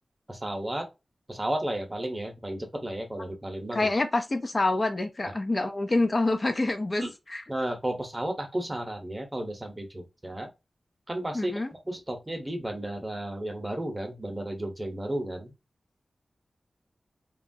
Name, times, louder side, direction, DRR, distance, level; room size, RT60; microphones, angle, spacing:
voice 1, 0.3-0.9 1.3-3.9 5.6-5.7 7.0-7.1 7.5-10.5 11.1-15.5, right 1 dB, 20° right, 0.7 m, -33 dB
voice 2, 3.7-7.0 7.3-7.4 11.3-11.7, left 2 dB, 40° left, 0.4 m, -26 dB
2.9 x 2.3 x 2.6 m
wide cardioid pair, 70°, 0 cm